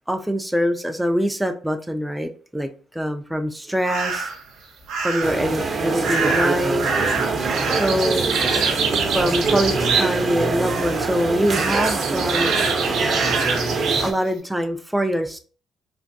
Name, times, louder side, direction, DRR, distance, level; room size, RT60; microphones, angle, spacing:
voice 1, 0.1-4.3 5.0-6.9 7.7-8.3 9.1-12.5 14.0-15.4, equal, 5° right, 4 dB, 0.3 m, -24 dB
sound 1, 3.8-4.4 4.9-5.5 6.0-10.4 10.6-11.1 11.5-14.1, right 5 dB, 85° right, 0.7 m, -25 dB
sound 2, 5.2-14.1, right 3 dB, 40° right, 0.6 m, -24 dB
3.3 x 2.5 x 2.6 m, 0.40 s
cardioid pair, 85°, 0 cm